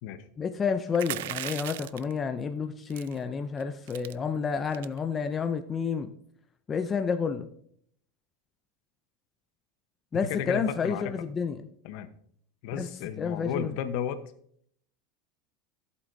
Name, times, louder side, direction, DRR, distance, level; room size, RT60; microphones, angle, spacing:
voice 1, 0.4-6.1 6.7-7.5 10.1-11.6 12.8-12.9 13.2-13.7, left 6 dB, 20° left, 7 dB, 0.5 m, -30 dB
sound 1, 0.9-2.1 2.9-3.2 3.6-3.7 3.9-4.1 4.7-5.0, right 15 dB, 85° right, 0.4 m, -36 dB
voice 2, 10.3-11.1 11.8-12.1 12.6-14.2, left 8 dB, 60° left, 11 dB, 0.9 m, -33 dB
14.5 x 8.3 x 2.7 m, 0.63 s
supercardioid pair, 160°, 0 cm